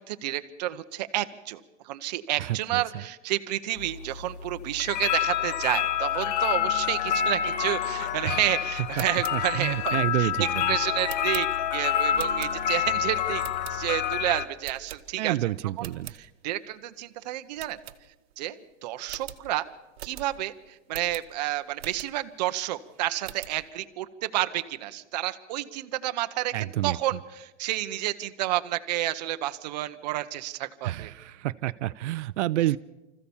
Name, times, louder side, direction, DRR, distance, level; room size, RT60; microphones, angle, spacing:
voice 1, 0.0-13.4 13.7-15.4 15.8-15.9 16.2-17.8 18.4-19.7 20.0-31.1, right 15 dB, 35° right, 9 dB, 0.8 m, -30 dB
voice 2, 2.4-2.8 8.2-8.4 9.0-9.1 9.3-10.8 15.2-16.1 26.5-27.2 30.8-32.8, right 15 dB, 85° right, 15 dB, 0.6 m, -29 dB
sound 1, 3.8-14.5, left 10 dB, 35° left, 0.7 m, -28 dB
sound 2, 8.8-12.9 13.4-14.1 14.6-15.4 15.7-16.2 16.6-16.7 17.0-17.1 17.5-18.5 18.7-18.8 19.0-22.4 22.8-23.6, right 11 dB, 60° right, 1.2 m, -44 dB
25.5 x 15.0 x 7.1 m, 1.1 s
supercardioid pair, 180°, 35 cm